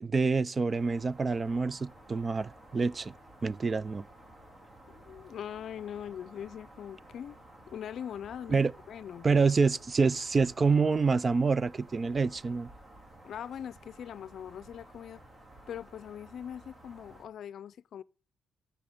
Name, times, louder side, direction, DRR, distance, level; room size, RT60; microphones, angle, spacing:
voice 1, 0.0-3.1 3.4-4.0 8.5-8.7 9.2-12.7, right 4 dB, 30° right, 0.4 m, -27 dB
sound 1, 0.7-17.3, right 1 dB, 50° right, 4.3 m, -54 dB
voice 2, 4.9-7.4 7.6-9.4 13.2-15.2 15.7-18.0, left 9 dB, 65° left, 0.5 m, -42 dB
10.5 x 6.8 x 7.1 m
cardioid pair, 90°, 0 cm